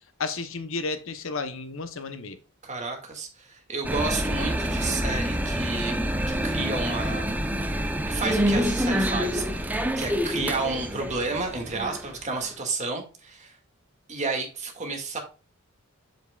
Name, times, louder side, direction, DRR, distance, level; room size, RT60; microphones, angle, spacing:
voice 1, 0.2-2.4, left 4 dB, 65° left, 0.9 m, -32 dB
voice 2, 2.6-6.0 6.3-7.3 8.1-13.6 14.1-15.2, right 3 dB, 35° right, 2.0 m, -31 dB
sound 1, 3.8-12.5, equal, 10° right, 0.7 m, -27 dB
7.6 x 7.3 x 2.4 m
head